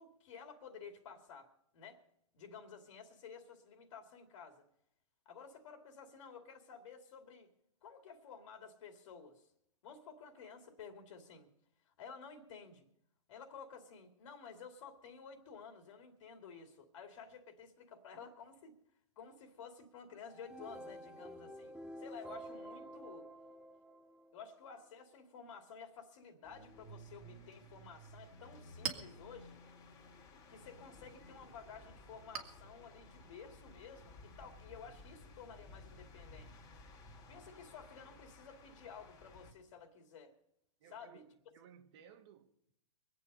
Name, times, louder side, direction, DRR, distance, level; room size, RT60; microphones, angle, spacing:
voice 1, 0.0-1.5 1.7-2.0 2.3-4.6 5.3-7.5 7.8-9.5 9.8-11.5 11.9-12.9 13.3-18.7 19.2-21.7 22.0-23.3 24.3-29.6 30.5-36.5 37.3-40.4 40.9-41.2, left 6 dB, 60° left, 2.4 m, -53 dB
sound 1, 20.3-24.6, equal, 5° right, 1.2 m, -50 dB
sound 2, 26.4-39.5, left 1 dB, 20° left, 2.4 m, -56 dB
Chink clink, 28.3-35.4, right 7 dB, 80° right, 2.4 m, -50 dB
voice 2, 40.8-42.7, right 8 dB, 45° right, 1.7 m, -60 dB
24.0 x 8.4 x 5.4 m
hypercardioid pair, 140°, 18 cm